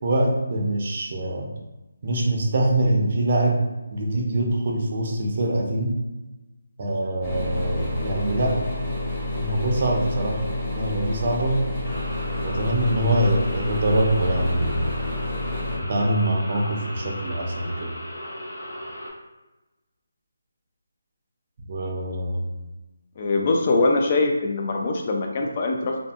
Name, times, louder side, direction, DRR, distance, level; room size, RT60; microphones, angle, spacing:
voice 1, 0.0-1.5 2.0-3.6 3.9-6.0 6.8-8.6 9.4-10.4 10.7-11.6 12.4-15.0 15.8-17.9 21.7-22.5, right 1 dB, 45° right, 0 dB, 0.5 m, -24 dB
sound 1, 7.2-15.8, left 1 dB, 5° left, 0.7 m, -29 dB
sound 2, 11.8-19.1, equal, 85° left, 0.9 m, -36 dB
voice 2, 23.2-26.0, left 3 dB, 35° left, 1 dB, 0.3 m, -22 dB
2.6 x 2.5 x 2.3 m, 1.1 s
figure-of-eight pair, 160°, 0 cm